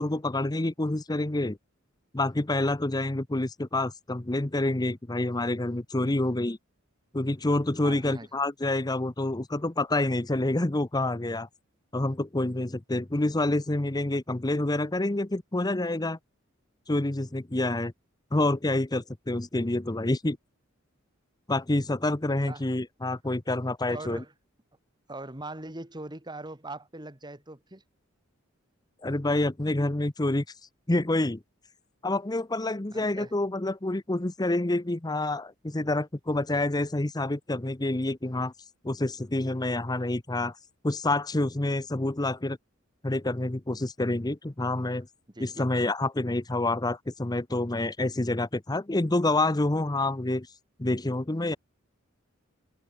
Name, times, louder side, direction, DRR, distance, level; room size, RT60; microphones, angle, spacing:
voice 1, 0.0-1.6 2.1-6.6 7.1-11.5 11.9-16.2 16.9-17.9 18.3-20.4 21.5-24.2 29.0-30.4 30.9-31.4 32.0-38.5 38.8-40.6 40.8-42.6 43.0-45.1 45.4-50.5 50.8-51.6, left 2 dB, 20° left, 0.8 m, -27 dB
voice 2, 7.8-8.3 18.3-18.4 22.4-22.6 23.9-24.3 25.1-27.8 32.9-33.3 45.3-45.7, right 2 dB, 20° right, 2.9 m, -41 dB
head